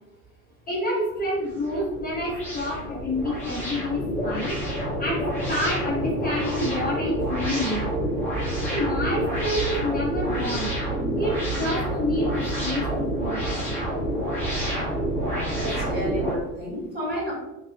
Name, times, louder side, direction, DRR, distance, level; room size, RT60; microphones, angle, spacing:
voice 1, 0.7-4.6 5.0-7.9 8.7-10.7 11.2-13.4, left 1 dB, 20° left, -7 dB, 0.8 m, -28 dB
sound 1, 1.2-16.3, right 1 dB, 5° left, 1.5 m, -28 dB
voice 2, 15.6-17.3, equal, 20° right, -5 dB, 1.2 m, -30 dB
2.7 x 2.2 x 3.2 m, 0.98 s
figure-of-eight pair, 70°, 47 cm